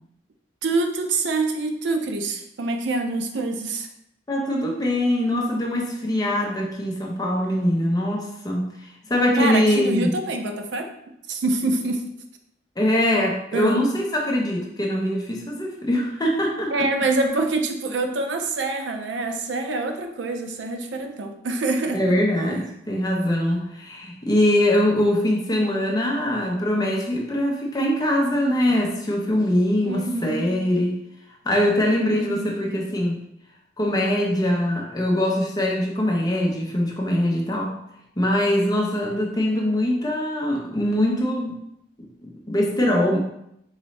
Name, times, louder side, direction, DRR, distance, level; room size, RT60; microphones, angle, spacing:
voice 1, 0.6-3.9 9.3-10.9 11.3-12.0 13.5-13.9 16.7-22.0 29.8-30.5 32.3-32.6, right 2 dB, 75° right, 5 dB, 0.4 m, -25 dB
voice 2, 4.3-8.7 9.1-10.1 12.8-16.9 21.9-31.0 31.4-33.2 33.8-37.7 38.2-41.6 42.0-43.2, left 1 dB, 20° left, -1 dB, 0.6 m, -22 dB
3.9 x 2.6 x 3.1 m, 0.77 s
head